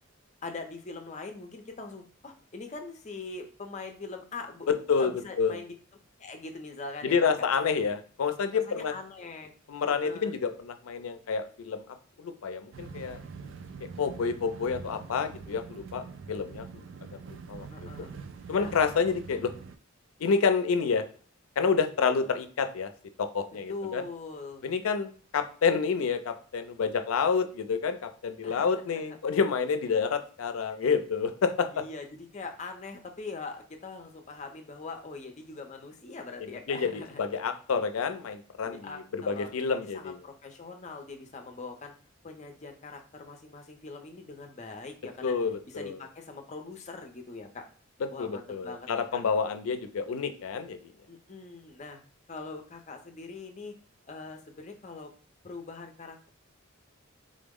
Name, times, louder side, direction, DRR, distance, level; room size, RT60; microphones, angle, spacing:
voice 1, 0.4-5.7 6.2-7.5 8.5-9.5 10.0-10.3 17.7-18.1 18.5-18.7 23.7-24.7 28.4-29.2 31.7-37.2 38.6-41.9 42.2-45.4 45.7-47.6 48.1-49.2 51.1-52.0 52.3-53.7 54.1-55.1 55.4-56.3, left 3 dB, 35° left, 5 dB, 0.5 m, -42 dB
voice 2, 4.7-5.1 5.4-5.6 7.0-8.9 9.7-11.8 12.2-13.2 14.0-16.8 17.3-17.7 18.5-19.5 20.2-21.0 21.6-22.9 23.2-24.0 24.6-31.8 36.7-40.2 45.2-46.0 48.2-50.9, left 5 dB, 90° left, 9 dB, 0.4 m, -28 dB
sound 1, 12.7-19.8, right 5 dB, 65° right, 0.3 m, -44 dB
3.7 x 2.0 x 3.5 m, 0.42 s
head